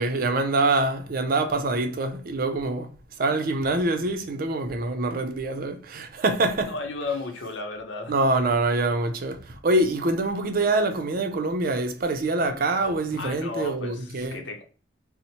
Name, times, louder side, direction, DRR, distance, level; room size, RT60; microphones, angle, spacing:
voice 1, 0.0-2.9 3.2-6.7 8.1-14.4, right 2 dB, 50° right, 0.5 m, -25 dB
voice 2, 6.5-8.1 13.1-14.6, left 3 dB, 85° left, 0.7 m, -34 dB
4.2 x 2.1 x 2.8 m
head